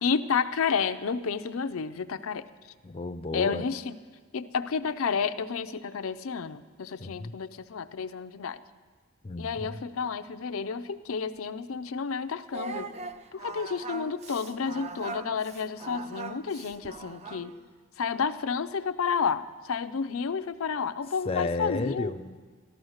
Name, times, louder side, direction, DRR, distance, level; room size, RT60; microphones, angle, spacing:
voice 1, 0.0-2.5 3.3-4.0 4.3-8.6 9.4-12.9 13.3-17.5 18.0-22.1, left 5 dB, 80° left, 10 dB, 0.5 m, -31 dB
voice 2, 2.8-3.6 7.0-7.3 9.2-9.8 21.2-22.4, left 3 dB, 25° left, 8 dB, 0.5 m, -32 dB
Singing, 12.5-17.6, right 3 dB, 30° right, 0.6 m, -40 dB
13.5 x 12.5 x 6.4 m, 1.5 s
head